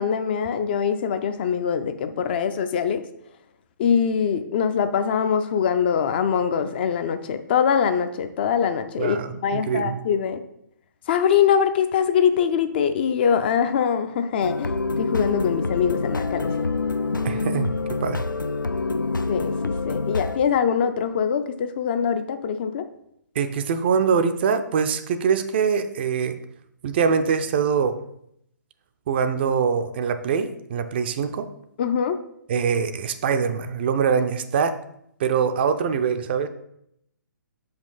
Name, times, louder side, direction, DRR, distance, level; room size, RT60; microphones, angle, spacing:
voice 1, 0.0-3.0 3.8-10.4 11.1-16.5 19.3-22.9 31.8-32.2, left 7 dB, 30° left, 9 dB, 0.4 m, -23 dB
voice 2, 9.0-10.0 17.2-18.3 23.4-26.4 26.8-28.0 29.1-31.5 32.5-34.8 35.2-36.5, right 6 dB, 35° right, 9 dB, 0.4 m, -23 dB
sound 1, 14.4-20.4, left 3 dB, 85° left, 0.5 m, -26 dB
6.5 x 5.2 x 4.0 m, 0.75 s
figure-of-eight pair, 130°, 10 cm